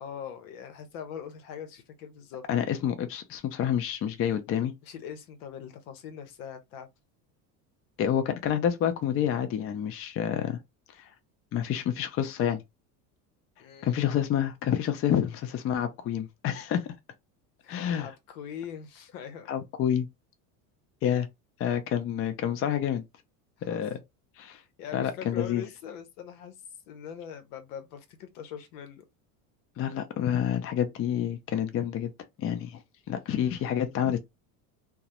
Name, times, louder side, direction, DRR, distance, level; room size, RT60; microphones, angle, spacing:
voice 1, 0.0-2.4 4.8-6.9 13.6-14.1 17.6-19.5 23.6-23.8 24.5-26.6 26.9-29.0, left 8 dB, 75° left, 0.8 m, -42 dB
voice 2, 2.5-4.7 8.0-10.6 11.0-11.1 11.5-12.6 13.8-16.9 17.7-18.1 19.5-20.1 21.0-21.3 21.6-23.0 23.7-24.0 24.4-24.6 24.9-25.6 29.8-32.1 32.4-32.8 33.1-34.2, left 9 dB, 30° left, 0.4 m, -28 dB
2.3 x 2.0 x 2.8 m
supercardioid pair, 100°, 44 cm